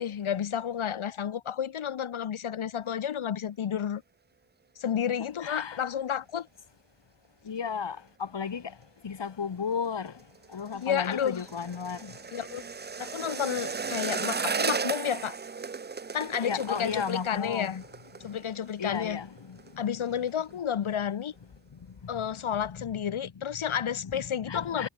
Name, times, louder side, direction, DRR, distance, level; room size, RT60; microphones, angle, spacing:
voice 1, 0.0-4.0 4.8-6.5 10.7-11.4 12.3-12.6 13.0-15.4 16.1-17.8 18.2-19.2 19.8-21.3 22.1-24.9, left 8 dB, 80° left, 1.6 m, -31 dB
voice 2, 5.4-5.8 7.4-8.8 9.0-10.2 10.5-12.2 16.4-17.8 18.2-18.3 18.8-19.8 22.1-22.4 22.7-22.8 23.2-23.3 24.0-24.9, left 6 dB, 60° left, 3.2 m, -34 dB
sound 1, 10.1-19.1 19.4-19.7 20.0-20.5 20.9-21.0, right 5 dB, 20° right, 0.4 m, -35 dB
wide cardioid pair, 140°, 49 cm